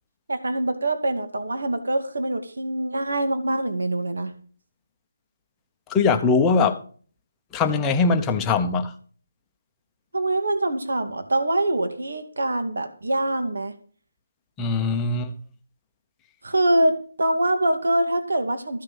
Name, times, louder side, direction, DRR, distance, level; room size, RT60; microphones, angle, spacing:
voice 1, 0.3-4.3 10.1-13.7 16.4-18.8, right 1 dB, 80° right, 2.4 m, -24 dB
voice 2, 5.9-6.8 7.5-8.9 14.6-15.3, left 4 dB, 10° left, 0.8 m, -21 dB
14.5 x 6.7 x 7.1 m
hypercardioid pair, 175°, 0 cm